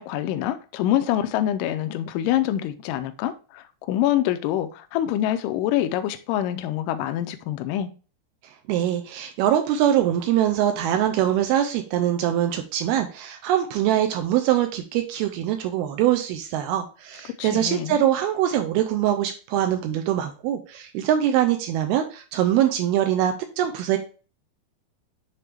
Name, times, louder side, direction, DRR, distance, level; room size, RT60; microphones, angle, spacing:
voice 1, 0.0-7.9 17.4-18.0, left 12 dB, 90° left, 1.9 m, -25 dB
voice 2, 8.7-24.0, right 11 dB, 80° right, 2.5 m, -23 dB
8.4 x 3.6 x 3.3 m
omnidirectional pair, 4.6 m